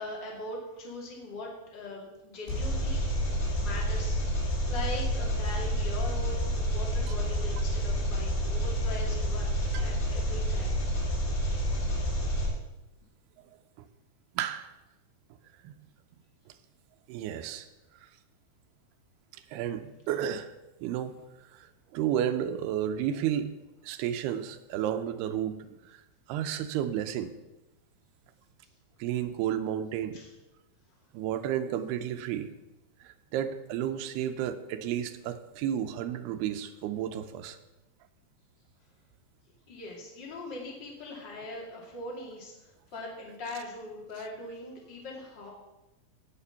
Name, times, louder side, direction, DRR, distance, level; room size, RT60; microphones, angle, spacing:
voice 1, 0.0-3.0 3.6-4.2 4.7-10.8 30.1-30.3 39.7-42.5 42.9-45.5, left 2 dB, 30° left, -2 dB, 2.7 m, -41 dB
Engine, 2.5-12.5, equal, 85° left, 5.4 m, -29 dB
voice 2, 14.4-14.7 15.6-15.8 17.1-17.7 19.5-20.5 20.8-21.2 21.5-23.5 23.8-26.0 26.3-27.3 29.0-30.2 31.1-32.5 33.0-37.6, right 10 dB, 85° right, 8 dB, 2.7 m, -32 dB
16.5 x 6.0 x 5.8 m, 1.0 s
omnidirectional pair, 4.6 m